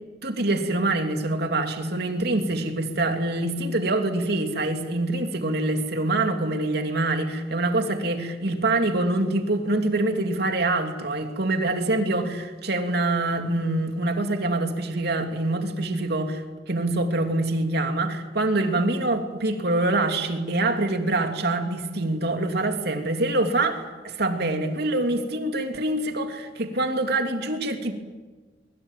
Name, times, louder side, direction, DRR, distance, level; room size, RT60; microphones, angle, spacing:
voice 1, 0.2-27.9, right 2 dB, 60° right, 5 dB, 3.0 m, -25 dB
24.0 x 23.0 x 9.2 m, 1.3 s
head